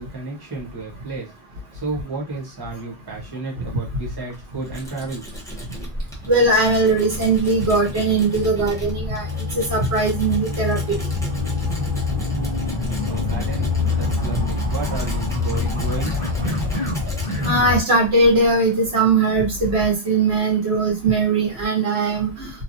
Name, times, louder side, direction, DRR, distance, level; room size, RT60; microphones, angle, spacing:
voice 1, 0.0-1.3 1.7-5.3 13.0-16.2, right 3 dB, 25° right, -2 dB, 1.1 m, -32 dB
Tools, 4.0-19.4, equal, 5° left, 0.6 m, -36 dB
sound 1, 5.3-17.8, left 3 dB, 60° right, 1.4 m, -26 dB
voice 2, 6.3-9.3 9.5-11.0 17.4-22.5, right 3 dB, 90° right, -3 dB, 1.5 m, -19 dB
3.1 x 2.3 x 2.6 m, 0.25 s
omnidirectional pair, 1.0 m